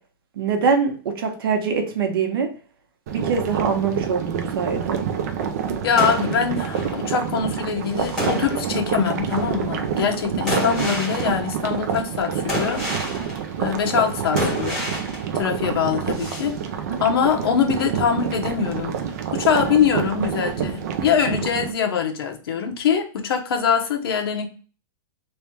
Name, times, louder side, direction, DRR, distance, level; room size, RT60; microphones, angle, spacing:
voice 1, 0.4-2.5 3.1-5.0, right 5 dB, 70° right, 1.0 m, -23 dB
sound 1, 3.1-21.7, right 7 dB, 40° right, 0.4 m, -27 dB
voice 2, 5.8-12.8 13.6-14.8 15.3-16.5 17.0-18.9 19.3-24.5, left 7 dB, 75° left, 0.9 m, -23 dB
sound 2, 6.0-7.3 7.9-8.9 9.3-9.6 10.5-11.7 12.5-13.6 14.4-15.4 16.1-16.5, equal, 5° left, 1.1 m, -29 dB
3.3 x 2.3 x 4.3 m
supercardioid pair, 175°, 13 cm